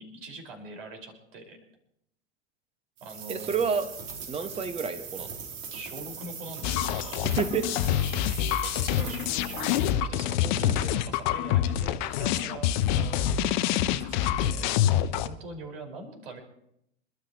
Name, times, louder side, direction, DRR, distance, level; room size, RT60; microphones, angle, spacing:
voice 1, 0.0-1.6 3.0-3.7 5.7-7.3 8.5-14.7 15.2-16.4, right 2 dB, 60° right, 3 dB, 5.4 m, -43 dB
sound 1, 3.0-9.9, right 6 dB, 40° right, 3.3 m, -40 dB
voice 2, 3.3-3.9 4.3-5.3 7.4-7.6 10.6-10.8, right 6 dB, 20° right, 9 dB, 1.6 m, -29 dB
sound 2, 6.6-15.3, left 11 dB, 45° left, 0.9 m, -26 dB
27.5 x 13.0 x 3.1 m, 0.77 s
figure-of-eight pair, 90°, 33 cm